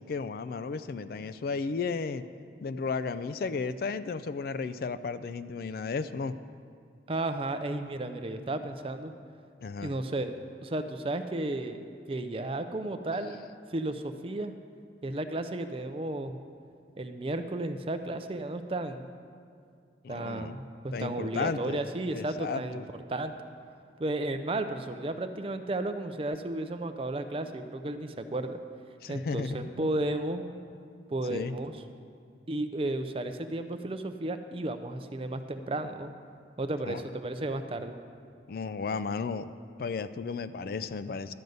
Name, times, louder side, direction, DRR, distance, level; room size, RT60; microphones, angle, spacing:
voice 1, 0.0-2.2 2.6-6.4 9.6-9.9 20.0-20.6 20.9-22.8 29.0-29.9 31.3-31.5 36.9-37.0 38.5-39.5 39.8-41.3, left 4 dB, 55° left, 13 dB, 0.3 m, -34 dB
voice 2, 7.1-9.1 9.8-10.3 10.6-11.8 12.1-13.4 13.7-14.5 15.0-16.4 17.0-19.1 20.1-22.8 23.1-23.3 24.0-28.6 29.1-30.5 31.1-31.8 32.5-36.1 36.6-37.9, right 2 dB, 30° right, 8 dB, 0.5 m, -33 dB
12.0 x 5.3 x 7.8 m, 2.3 s
head